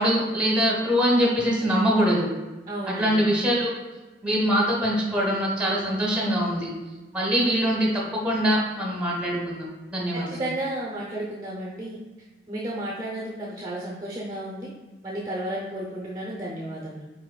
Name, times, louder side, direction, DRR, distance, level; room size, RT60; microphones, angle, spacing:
voice 1, 0.0-2.3 2.9-3.7 4.2-6.7 7.1-7.9 8.2-10.4, equal, 5° right, -3 dB, 1.0 m, -23 dB
voice 2, 2.7-3.4 10.1-12.0 12.5-14.7 15.0-17.0, right 1 dB, 20° right, -4 dB, 0.5 m, -33 dB
5.4 x 4.0 x 2.2 m, 1.2 s
head